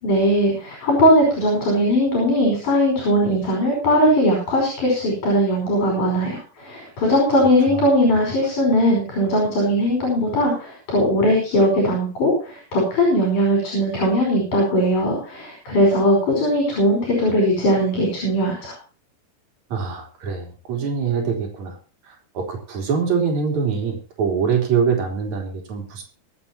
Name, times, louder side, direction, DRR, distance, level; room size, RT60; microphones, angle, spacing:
voice 1, 0.0-18.7, equal, 60° left, 0 dB, 6.5 m, -19 dB
voice 2, 19.7-21.8 22.1-26.0, right 6 dB, 55° right, 2 dB, 4.7 m, -24 dB
24.5 x 8.8 x 2.9 m, 0.37 s
omnidirectional pair, 4.0 m